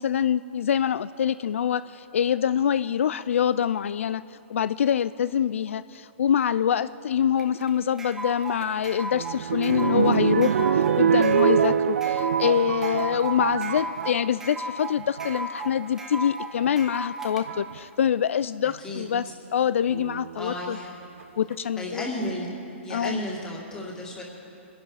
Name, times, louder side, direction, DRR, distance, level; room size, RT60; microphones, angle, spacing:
voice 1, 0.0-4.2 4.5-19.2 19.5-20.8 21.4-22.1 22.9-23.2, left 9 dB, 80° left, 15 dB, 0.4 m, -25 dB
sound 1, 7.4-17.4, right 1 dB, 5° right, 0.9 m, -36 dB
sound 2, 8.6-14.2 15.0-15.4 16.7-16.8 17.5-17.8 19.9-20.5 21.2-21.3 21.5-21.6, right 8 dB, 85° right, 0.6 m, -25 dB
voice 2, 20.4-21.0 21.8-22.5 22.8-24.2, left 1 dB, 10° left, -2 dB, 2.2 m, -33 dB
25.0 x 11.0 x 4.9 m, 2.7 s
hypercardioid pair, 165°, 7 cm